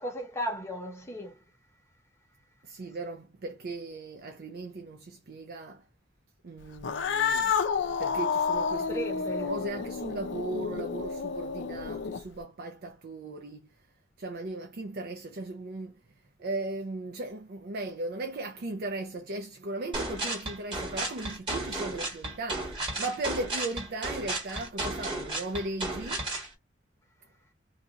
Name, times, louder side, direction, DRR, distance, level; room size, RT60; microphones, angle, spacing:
voice 1, 0.0-1.3 8.8-9.5, equal, 15° left, 1.0 m, -35 dB
voice 2, 2.6-5.8 6.4-13.7 14.2-16.0 16.4-26.3, right 2 dB, 55° right, 0.5 m, -37 dB
Cat, 6.8-12.4, left 6 dB, 70° left, 0.5 m, -30 dB
sound 1, 19.9-26.5, right 2 dB, 25° right, 1.6 m, -34 dB
2.7 x 2.4 x 3.9 m
head